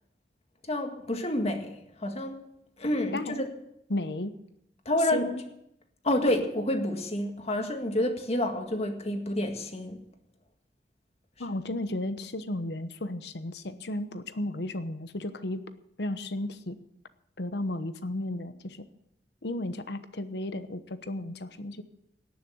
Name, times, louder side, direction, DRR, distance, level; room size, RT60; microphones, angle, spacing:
voice 1, 0.7-2.5 2.8-3.5 4.9-5.3 6.0-10.0, left 1 dB, 35° left, 4 dB, 1.8 m, -29 dB
voice 2, 3.1-3.5 3.9-4.3 5.1-5.4 11.4-15.6 16.0-16.8 17.4-18.8 19.4-21.8, left 1 dB, 65° left, 11 dB, 1.0 m, -34 dB
18.0 x 6.8 x 7.9 m, 0.80 s
head